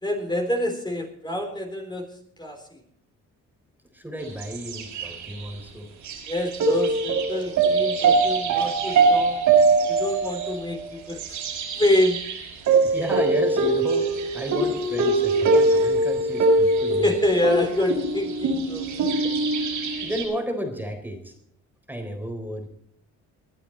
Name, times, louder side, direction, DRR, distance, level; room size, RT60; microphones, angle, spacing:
voice 1, 0.0-2.1 2.4-2.8 6.3-9.4 9.9-11.2 11.7-12.2 17.0-19.3, left 1 dB, 15° left, 2 dB, 3.7 m, -26 dB
voice 2, 3.9-5.9 12.8-14.1 14.3-17.1 19.2-19.3 19.7-21.3 21.9-22.7, equal, 5° right, 4 dB, 3.7 m, -32 dB
sound 1, 4.3-5.4 6.0-20.2, right 3 dB, 80° right, 5.4 m, -22 dB
20.5 x 11.5 x 4.3 m, 0.71 s
cardioid pair, 90°, 30 cm